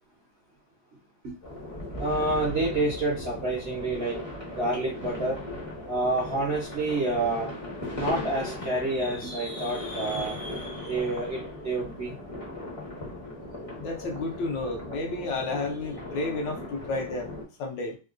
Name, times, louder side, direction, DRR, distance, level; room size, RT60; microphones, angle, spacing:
sound 1, 1.4-17.4, left 1 dB, 35° left, 0.6 m, -38 dB
voice 1, 2.0-5.4 5.9-7.5 8.0-10.4 10.8-12.1, right 2 dB, 55° right, -4 dB, 0.6 m, -28 dB
voice 2, 13.8-18.0, left 3 dB, 75° left, 2 dB, 1.3 m, -32 dB
3.5 x 2.2 x 2.4 m, 0.31 s
omnidirectional pair, 2.1 m